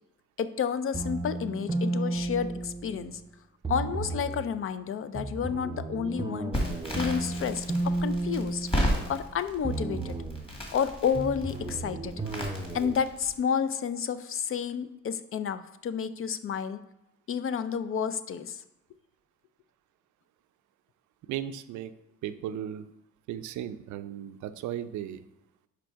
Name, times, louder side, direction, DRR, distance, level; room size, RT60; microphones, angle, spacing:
voice 1, 0.4-3.2 3.7-6.6 6.9-8.7 9.1-10.2 10.7-12.1 12.7-16.8 17.3-18.6, left 7 dB, 45° left, 12 dB, 0.4 m, -30 dB
sound 1, 0.9-3.2 3.6-4.5 5.1-9.3 9.6-10.5 11.1-12.9, right 2 dB, 15° right, 0.5 m, -33 dB
Crackle, 6.5-13.3, equal, 20° left, 1.9 m, -34 dB
voice 2, 21.3-21.9 22.2-22.9 23.3-25.2, right 10 dB, 75° right, 11 dB, 0.5 m, -36 dB
5.1 x 4.6 x 4.5 m, 0.86 s
cardioid pair, 90°, 30 cm